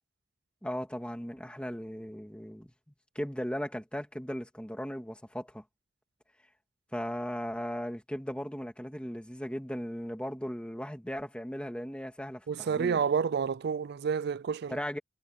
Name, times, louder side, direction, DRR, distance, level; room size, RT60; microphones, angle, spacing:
voice 1, 0.6-2.7 3.1-5.6 6.9-13.0 14.7-15.0, equal, 5° left, 2.3 m, -37 dB
voice 2, 12.5-14.8, right 6 dB, 55° right, 0.4 m, -29 dB
head